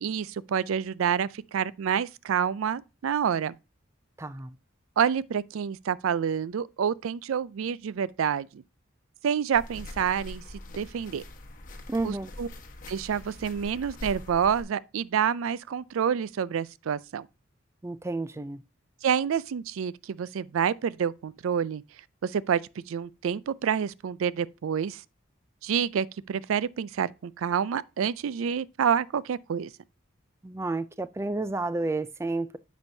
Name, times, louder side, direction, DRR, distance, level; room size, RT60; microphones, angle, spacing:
voice 1, 0.0-3.6 5.0-8.6 9.2-10.4 10.8-11.2 12.0-12.5 12.9-17.3 19.0-21.8 22.2-22.6 22.9-25.0 25.6-29.7, right 7 dB, 85° right, 0.4 m, -28 dB
voice 2, 4.2-4.5 11.9-12.3 17.8-18.6 30.4-32.6, right 2 dB, 15° right, 0.3 m, -31 dB
sound 1, 9.5-14.6, left 1 dB, 40° left, 1.2 m, -43 dB
9.6 x 6.2 x 2.7 m
head